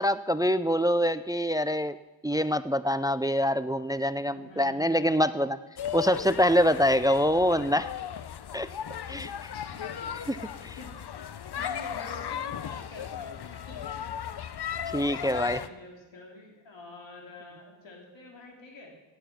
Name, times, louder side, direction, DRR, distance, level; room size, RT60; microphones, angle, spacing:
voice 1, 0.0-2.0 2.2-5.6 5.9-7.9 8.5-8.7 9.1-9.5 10.3-10.4 10.6-10.8 14.9-15.6, equal, 10° right, 15 dB, 0.4 m, -25 dB
voice 2, 4.3-5.6 9.5-10.4 10.8-11.0 11.5-14.0 14.9-18.9, left 2 dB, 85° left, 0 dB, 3.1 m, -47 dB
sound 1, 5.8-15.7, left 9 dB, 60° left, 0.7 m, -36 dB
16.5 x 9.0 x 6.0 m, 1.1 s
cardioid pair, 55°, 44 cm